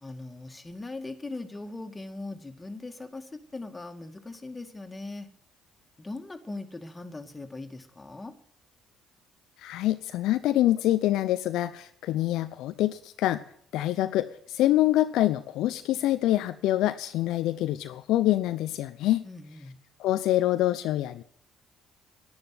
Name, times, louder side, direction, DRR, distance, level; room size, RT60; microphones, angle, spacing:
voice 1, 0.0-5.3 6.0-8.3 19.2-19.8, left 2 dB, 20° left, 6 dB, 2.3 m, -40 dB
voice 2, 9.6-13.4 13.7-19.2 20.0-21.2, left 14 dB, 70° left, 11 dB, 0.7 m, -25 dB
10.5 x 10.5 x 9.4 m, 0.63 s
hypercardioid pair, 50°, 0 cm